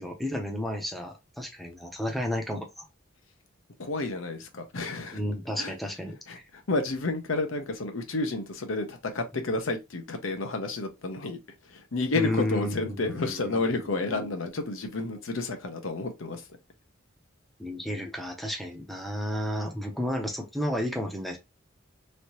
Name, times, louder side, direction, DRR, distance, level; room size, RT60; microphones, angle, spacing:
voice 1, 0.0-2.9 5.1-6.2 12.1-14.3 17.6-21.4, left 1 dB, ahead, 0.6 m, -32 dB
voice 2, 3.8-5.2 5.6-5.7 6.3-16.4, left 3 dB, 75° left, 0.7 m, -31 dB
3.2 x 2.7 x 2.8 m
head